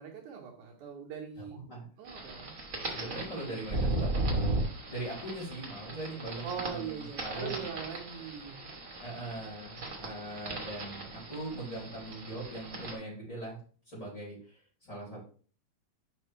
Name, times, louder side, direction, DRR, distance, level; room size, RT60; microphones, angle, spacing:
voice 1, 0.0-1.6 2.0-2.5 6.4-8.6, right 7 dB, 70° right, -1 dB, 2.6 m, -41 dB
voice 2, 1.5-1.8 2.9-4.6 4.9-7.6 9.0-13.6 13.9-15.2, right 1 dB, 25° left, -5 dB, 4.1 m, -41 dB
sound 1, 2.1-12.9, right 2 dB, 45° right, 1.0 m, -37 dB
8.2 x 5.3 x 3.2 m, 0.42 s
omnidirectional pair, 3.8 m